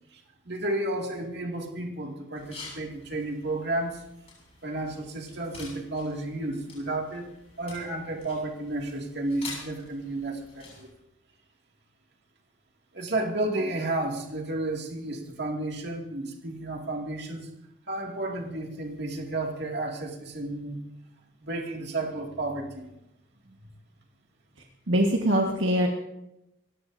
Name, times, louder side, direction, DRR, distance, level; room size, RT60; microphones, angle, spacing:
voice 1, 0.5-4.0 4.6-7.3 7.6-10.9 12.9-17.5 17.9-20.8 21.4-22.8 23.6-23.7, right 2 dB, 55° right, 1 dB, 2.4 m, -32 dB
sound 1, 2.3-10.9, left 4 dB, 30° left, 6.8 m, -47 dB
voice 2, 24.9-25.9, right 1 dB, 70° right, 0 dB, 1.6 m, -23 dB
28.0 x 15.0 x 2.7 m, 0.90 s
head